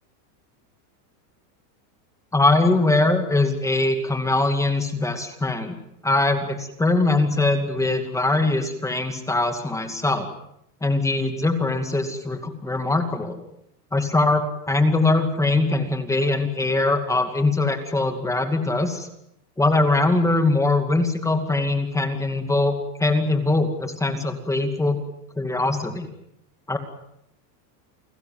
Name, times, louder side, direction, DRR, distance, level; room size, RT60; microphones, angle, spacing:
voice 1, 2.3-5.8 6.0-10.3 10.8-13.4 13.9-19.1 19.6-22.7 23.0-25.0 25.4-26.1 26.7-26.8, left 2 dB, 5° left, 6 dB, 2.4 m, -22 dB
30.0 x 20.0 x 7.9 m, 0.77 s
supercardioid pair, 155°, 48 cm